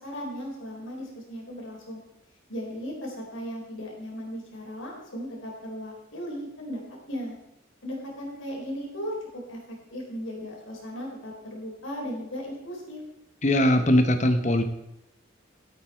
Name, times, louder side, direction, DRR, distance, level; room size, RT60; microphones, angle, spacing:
voice 1, 0.0-2.0 2.5-6.8 7.1-7.4 7.8-9.1 9.5-13.0, equal, 75° left, -2 dB, 4.1 m, -36 dB
voice 2, 13.4-14.6, left 1 dB, 35° left, 7 dB, 1.1 m, -20 dB
13.5 x 8.4 x 4.6 m, 0.85 s
head